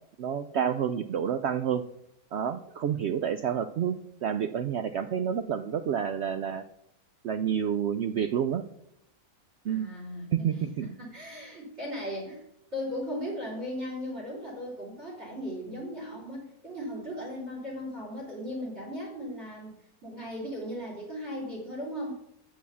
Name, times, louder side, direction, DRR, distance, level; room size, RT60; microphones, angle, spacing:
voice 1, 0.2-1.8 2.3-6.6 7.2-8.6 9.6-9.9 10.3-10.9, right 8 dB, 70° right, 9 dB, 0.6 m, -29 dB
voice 2, 9.7-12.4 12.7-19.7 20.0-22.1, equal, 45° right, -5 dB, 3.5 m, -37 dB
8.5 x 6.3 x 6.9 m, 0.77 s
omnidirectional pair, 1.6 m